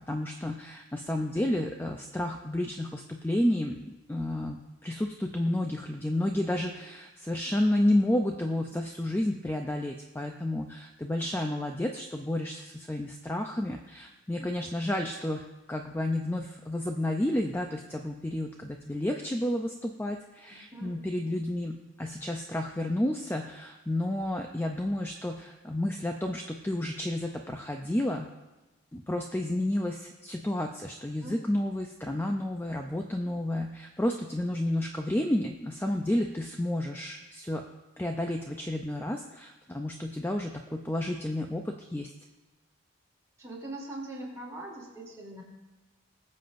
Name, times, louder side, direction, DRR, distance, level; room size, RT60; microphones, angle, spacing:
voice 1, 0.1-28.3 28.9-37.6 38.0-42.1, left 1 dB, 10° left, 3 dB, 0.4 m, -31 dB
voice 2, 43.4-45.4, right 2 dB, 15° right, -5 dB, 3.0 m, -41 dB
21.0 x 7.5 x 2.6 m, 1.1 s
head